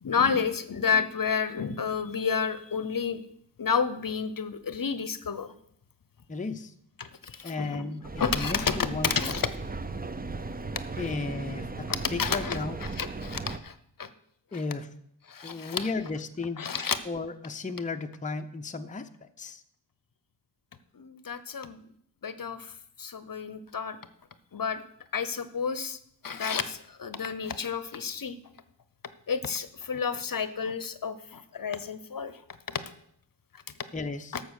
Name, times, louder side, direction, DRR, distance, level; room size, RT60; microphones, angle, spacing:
voice 1, 0.0-3.2 3.6-5.5 7.0-8.8 9.2-9.5 11.9-14.1 15.3-15.9 16.6-17.0 20.9-21.8 22.2-24.0 24.5-24.8 25.1-26.0 26.2-28.4 29.3-32.4 32.7-32.8 34.3-34.4, left 6 dB, 50° left, 13 dB, 0.8 m, -31 dB
voice 2, 6.3-6.7 7.4-9.3 11.0-12.8 14.5-14.9 15.4-16.6 17.1-19.1 19.4-19.6 33.9-34.4, left 3 dB, 20° left, 7 dB, 0.6 m, -34 dB
Mechanical fan, 8.0-13.6, right 3 dB, 20° right, 0.6 m, -36 dB
12.5 x 7.1 x 6.4 m, 0.70 s
wide cardioid pair, 125°, 43 cm